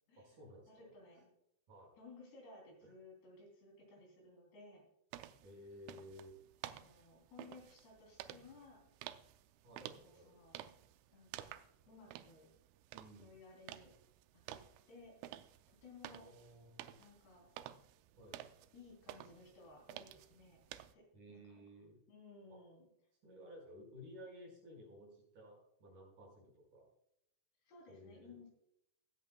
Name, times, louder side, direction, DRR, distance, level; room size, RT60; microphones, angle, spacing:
voice 1, 0.2-0.9 1.7-1.9 2.8-2.9 5.4-6.3 9.6-10.4 12.9-13.4 16.1-17.0 18.2-18.5 21.1-22.0 22.5-22.6 23.2-26.9 27.9-28.4, equal, 45° right, -2 dB, 6.6 m, -56 dB
voice 2, 0.7-1.3 2.0-4.9 6.6-8.9 9.8-10.7 11.1-12.5 13.2-13.9 14.5-14.6 14.9-15.2 15.8-16.3 17.0-17.5 18.7-20.6 20.9-21.6 22.1-22.9 27.7-28.5, left 3 dB, 65° left, 0 dB, 5.3 m, -59 dB
sound 1, 5.1-20.9, right 13 dB, 90° right, 3.0 m, -53 dB
21.5 x 8.6 x 2.3 m, 0.78 s
omnidirectional pair, 5.3 m